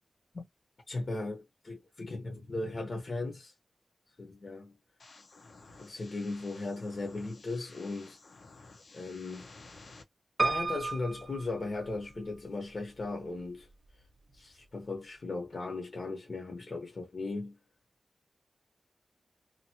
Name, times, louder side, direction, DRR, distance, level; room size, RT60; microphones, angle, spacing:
voice 1, 0.9-3.5 4.2-4.8 5.8-8.2 8.9-9.5 10.4-13.7 14.3-17.6, left 2 dB, 45° left, 0.9 m, -37 dB
sound 1, 5.0-10.0, left 3 dB, 75° left, 0.9 m, -54 dB
Piano, 10.4-12.4 13.0-13.7 14.0-14.1 14.3-14.4, right 3 dB, 35° right, 0.5 m, -33 dB
2.8 x 2.5 x 2.8 m
wide cardioid pair, 120°, 0 cm